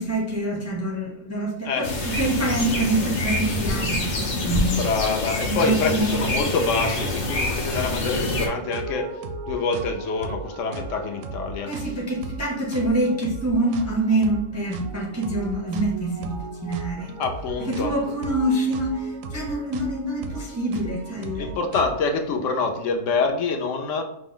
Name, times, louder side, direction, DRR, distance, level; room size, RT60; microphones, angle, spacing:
voice 1, 0.0-4.8 5.5-6.2 11.6-17.1 17.7-21.5, right 1 dB, 25° right, -2 dB, 0.3 m, -26 dB
sound 1, 1.8-8.5, left 1 dB, 45° left, 0.7 m, -26 dB
voice 2, 4.8-9.1 9.5-11.7 17.2-17.9 21.3-24.0, left 4 dB, 75° left, 3 dB, 1.0 m, -26 dB
sound 2, 7.2-22.1, right 3 dB, 90° right, 1.0 m, -36 dB
5.1 x 2.0 x 3.7 m, 0.84 s
omnidirectional pair, 1.3 m